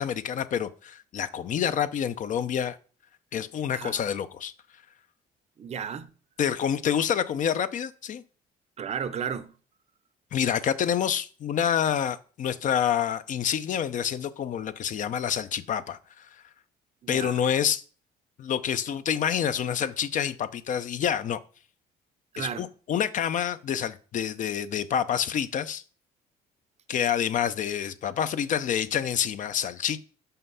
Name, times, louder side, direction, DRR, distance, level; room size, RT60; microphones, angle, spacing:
voice 1, 0.0-2.8 3.3-4.5 6.4-8.2 10.3-16.3 17.1-17.8 18.4-21.4 22.4-25.8 26.9-30.0, left 8 dB, 50° left, 0.6 m, -27 dB
voice 2, 5.6-6.1 8.8-9.5 17.0-17.4 22.3-22.7, right 7 dB, 40° right, 0.6 m, -33 dB
5.6 x 5.6 x 5.5 m
cardioid pair, 110°, 17 cm